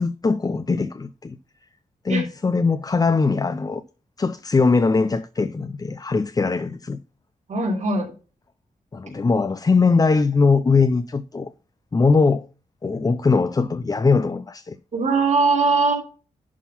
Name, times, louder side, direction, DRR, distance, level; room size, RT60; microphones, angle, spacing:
voice 1, 0.0-1.4 2.0-3.8 4.2-7.0 8.9-11.5 11.9-12.5 12.8-14.8, left 4 dB, 25° left, 0.5 m, -21 dB
voice 2, 7.5-8.1 14.9-15.9, right 4 dB, 55° right, 3.9 m, -20 dB
11.0 x 3.7 x 5.8 m
wide cardioid pair, 115°, 15 cm